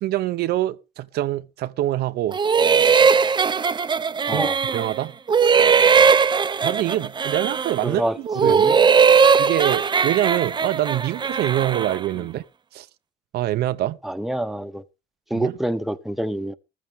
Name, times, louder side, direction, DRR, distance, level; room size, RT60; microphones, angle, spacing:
voice 1, 0.0-2.4 4.3-5.1 6.6-8.8 9.4-12.4 12.7-12.9 13.3-14.0 15.3-15.6, right 14 dB, 70° right, 0.8 m, -25 dB
sound 1, 2.3-5.0 5.3-7.9 8.3-12.0, right 6 dB, 25° right, 0.7 m, -19 dB
voice 2, 4.3-4.6 7.8-8.2 8.4-8.7 14.0-14.8 15.3-16.5, right 1 dB, ahead, 1.1 m, -26 dB
14.5 x 14.0 x 3.6 m
cardioid pair, 110°, 17 cm